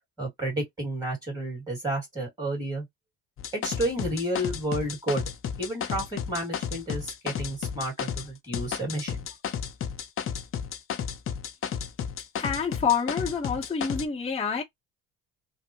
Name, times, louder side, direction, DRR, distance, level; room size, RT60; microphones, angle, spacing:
voice 1, 0.2-2.9 3.5-5.2 5.6-9.2, right 1 dB, 10° right, 2.3 m, -31 dB
sound 1, 3.4-8.3 8.5-14.0, left 8 dB, 40° left, 0.7 m, -33 dB
voice 2, 12.4-14.6, left 6 dB, 20° left, 0.9 m, -27 dB
3.2 x 2.1 x 3.0 m
supercardioid pair, 90°, 32 cm